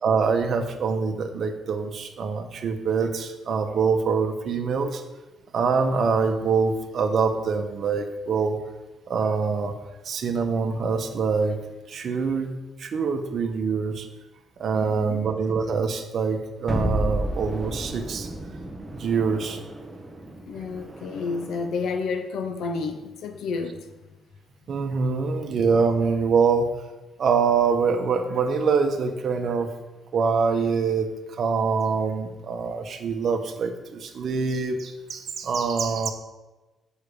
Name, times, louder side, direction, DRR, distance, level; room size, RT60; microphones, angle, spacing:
voice 1, 0.0-5.0 5.5-8.6 9.1-9.7 10.0-11.6 11.9-12.5 12.8-14.1 14.6-18.3 18.9-19.6 24.7-26.7 27.2-29.7 30.1-31.1 31.3-36.1, right 5 dB, 55° right, 6 dB, 1.0 m, -24 dB
voice 2, 14.7-15.3 20.5-23.9, left 4 dB, 75° left, 6 dB, 0.7 m, -30 dB
sound 1, 16.7-21.8, right 1 dB, 10° right, 1.0 m, -32 dB
6.9 x 4.9 x 6.8 m, 1.1 s
cardioid pair, 90°, 0 cm